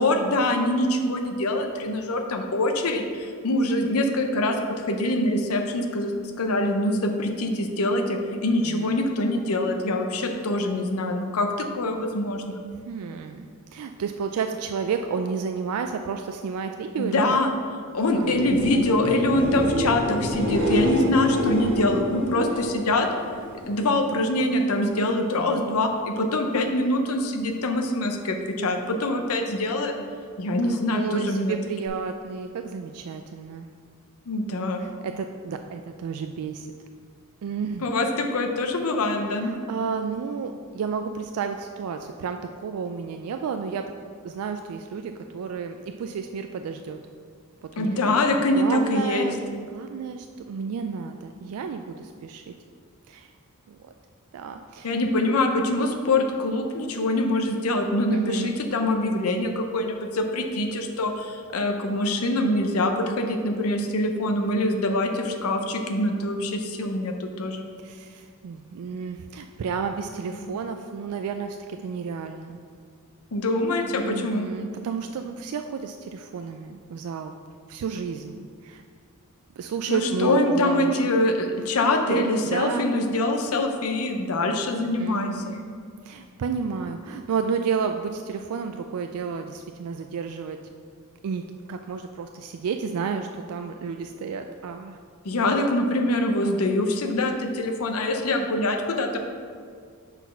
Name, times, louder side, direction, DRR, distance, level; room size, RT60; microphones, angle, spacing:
voice 1, 0.0-12.6 17.0-17.5 17.9-23.1 23.7-29.9 30.4-31.5 34.3-34.9 37.8-39.5 47.8-49.2 54.8-67.7 70.3-70.4 73.3-74.5 79.9-85.6 95.2-99.2, left 1 dB, 70° left, 4 dB, 0.7 m, -24 dB
voice 2, 8.6-9.0 12.8-13.5 13.7-17.4 18.1-18.4 25.3-25.6 30.7-33.7 34.8-36.7 37.4-37.9 39.4-43.8 44.2-47.0 47.7-48.2 48.5-49.4 49.7-52.6 53.1-53.3 53.7-53.9 54.3-54.9 58.1-58.6 67.8-72.6 74.0-77.3 77.7-78.8 79.6-81.0 82.1-82.2 82.5-82.9 85.0-85.6 86.0-90.6 91.2-95.0, right 6 dB, 75° right, 6 dB, 0.3 m, -31 dB
sound 1, 18.1-23.9 24.2-24.8 31.9-32.0, left 1 dB, 55° right, 1.4 m, -28 dB
6.2 x 4.1 x 5.5 m, 2.1 s
head